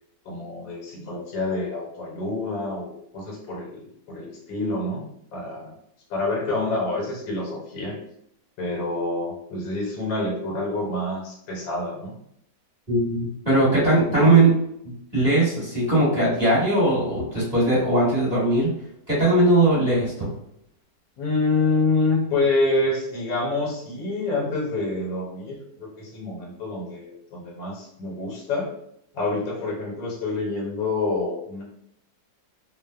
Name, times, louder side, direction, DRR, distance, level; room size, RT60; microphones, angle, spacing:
voice 1, 0.2-5.7 6.1-8.0 8.6-12.2 14.1-14.3 21.2-28.7 29.1-31.6, left 2 dB, 80° left, -2 dB, 1.5 m, -27 dB
voice 2, 12.9-14.5 14.8-18.7 19.1-20.3, right 2 dB, 25° right, -11 dB, 1.2 m, -20 dB
3.1 x 2.0 x 2.3 m, 0.74 s
omnidirectional pair, 2.0 m